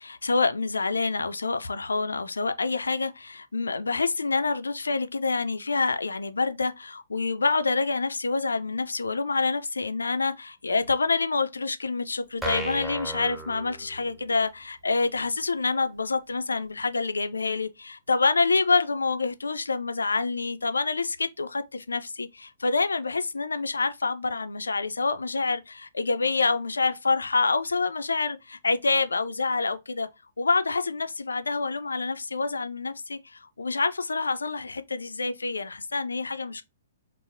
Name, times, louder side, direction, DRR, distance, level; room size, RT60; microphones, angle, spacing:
voice 1, 0.0-30.1 30.4-36.6, left 4 dB, 75° left, 0.4 m, -27 dB
sound 1, 12.4-14.3, right 1 dB, 10° right, 0.5 m, -35 dB
4.0 x 2.0 x 2.5 m
figure-of-eight pair, 120°, 0 cm